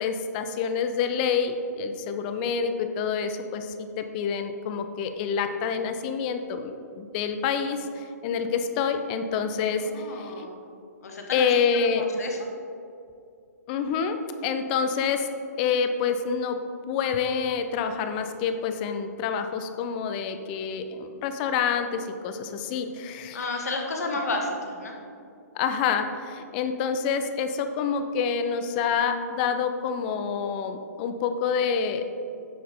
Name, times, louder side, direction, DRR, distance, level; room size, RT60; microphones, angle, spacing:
voice 1, 0.0-10.5 11.3-12.1 13.7-14.2 14.4-15.3 15.6-16.6 16.9-23.4 25.5-32.1, left 6 dB, 35° left, 8 dB, 0.7 m, -27 dB
voice 2, 9.8-10.6 11.0-11.5 12.0-12.5 23.3-25.0, left 2 dB, 65° left, 2 dB, 1.6 m, -32 dB
9.3 x 6.6 x 3.8 m, 2.5 s
figure-of-eight pair, 125°, 9 cm